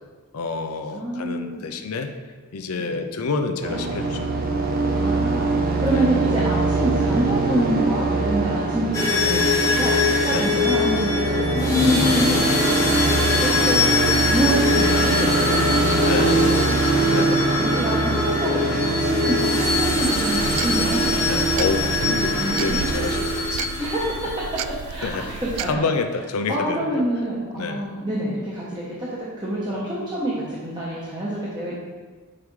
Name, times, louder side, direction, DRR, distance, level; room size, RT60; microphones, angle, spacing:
voice 1, 0.3-2.1 2.5-4.3 5.9-6.1 10.3-10.5 16.0-16.4 17.1-17.3 21.2-23.8 25.0-25.3 25.6-27.0 27.6-27.9, left 4 dB, 80° left, 6 dB, 0.6 m, -28 dB
voice 2, 0.9-1.6 2.8-3.0 4.9-5.5 5.8-16.6 17.0-17.1 17.4-21.3 22.4-22.9 23.8-24.3 24.9-25.3 25.6-25.8 26.5-31.7, right 1 dB, 20° right, -7 dB, 1.1 m, -27 dB
sound 1, 3.6-23.3, right 3 dB, 40° right, 0.8 m, -24 dB
sound 2, 8.9-24.6, left 3 dB, 15° left, 1.1 m, -22 dB
sound 3, 19.6-25.8, right 6 dB, 90° right, 0.3 m, -33 dB
8.7 x 4.8 x 3.2 m, 1.4 s
head